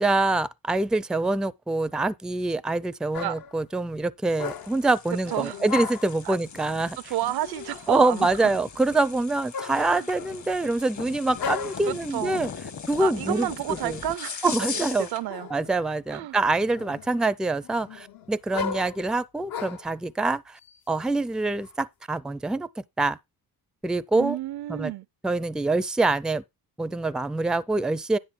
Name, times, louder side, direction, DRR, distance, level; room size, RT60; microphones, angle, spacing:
voice 1, 0.0-7.0 7.9-12.5 12.9-13.5 13.8-14.0 14.4-15.1 15.5-20.6 20.9-22.7 23.0-23.2 23.8-24.4 24.7-24.9 25.2-26.4 26.8-28.2, right 2 dB, ahead, 0.4 m, -25 dB
sound 1, 3.1-3.6 4.3-4.9 5.3-6.2 7.2-7.9 9.5-10.5 11.4-12.0 13.4-14.2 15.3-15.8 16.3-17.2 17.6-19.9 20.6-21.7, left 6 dB, 65° left, 0.9 m, -36 dB
sound 2, 4.3-15.3, left 6 dB, 50° left, 1.4 m, -40 dB
voice 2, 5.3-5.6 6.2-6.4 7.0-8.5 9.8-10.1 11.9-12.4 13.0-14.8 15.1-15.5 16.1-16.4 24.1-25.1, right 14 dB, 75° right, 0.5 m, -31 dB
10.0 x 6.6 x 3.8 m
cardioid pair, 80°, 39 cm